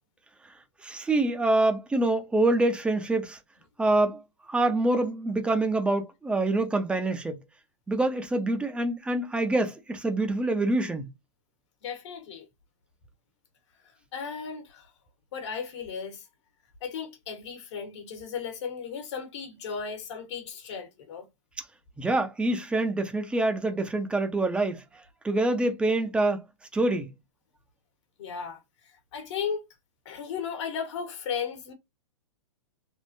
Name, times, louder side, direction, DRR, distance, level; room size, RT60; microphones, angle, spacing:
voice 1, 0.8-3.4 3.8-4.2 4.5-7.4 7.9-11.1 22.0-26.4 26.7-27.1, right 2 dB, 5° right, 0.6 m, -26 dB
voice 2, 11.8-12.5 13.8-14.9 15.3-16.3 16.8-21.3 28.2-29.6 30.0-31.7, left 6 dB, 60° left, 1.4 m, -35 dB
3.6 x 2.4 x 2.6 m
hypercardioid pair, 130°, 17 cm